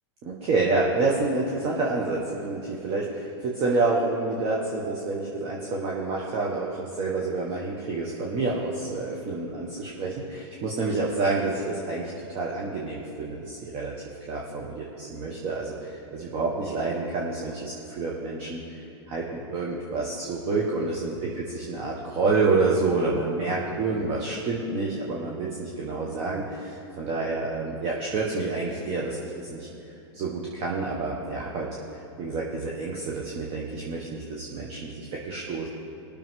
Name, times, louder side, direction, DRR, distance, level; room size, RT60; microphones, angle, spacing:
voice 1, 0.2-13.9 14.3-29.7 30.1-35.7, right 3 dB, 40° right, -3 dB, 1.6 m, -28 dB
20.0 x 6.9 x 3.8 m, 3.0 s
hypercardioid pair, 120°, 15 cm